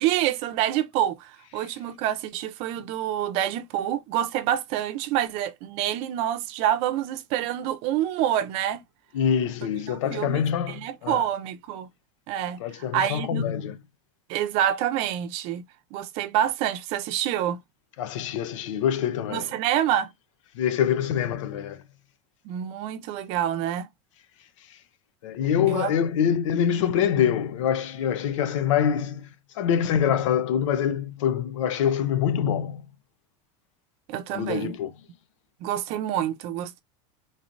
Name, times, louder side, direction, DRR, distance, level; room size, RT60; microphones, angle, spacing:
voice 1, 0.0-8.8 9.9-10.4 10.7-11.9 12.3-13.5 14.3-15.6 15.9-17.6 19.3-20.1 22.4-23.9 25.7-25.9 34.1-34.7 35.6-36.8, right 11 dB, 40° right, 0.5 m, -27 dB
voice 2, 9.1-11.2 12.6-13.8 18.0-19.5 20.5-21.8 25.2-29.3 29.6-32.8 34.3-34.9, left 9 dB, 85° left, 0.7 m, -25 dB
4.0 x 3.1 x 2.5 m
supercardioid pair, 175°, 16 cm